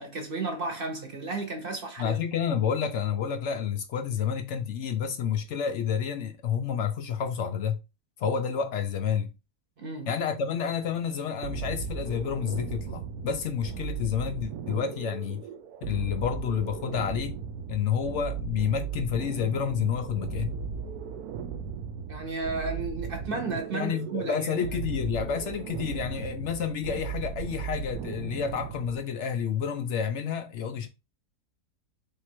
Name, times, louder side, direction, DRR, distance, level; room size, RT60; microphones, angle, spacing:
voice 1, 0.0-2.2 9.8-10.1 22.1-24.6, right 3 dB, 45° right, 0.9 m, -33 dB
voice 2, 2.0-7.8 8.2-9.3 10.1-15.4 15.9-17.4 17.7-20.6 23.7-30.9, left 7 dB, 70° left, 0.7 m, -29 dB
sound 1, 11.4-29.0, right 6 dB, 75° right, 1.1 m, -36 dB
3.6 x 2.7 x 4.4 m
omnidirectional pair, 1.7 m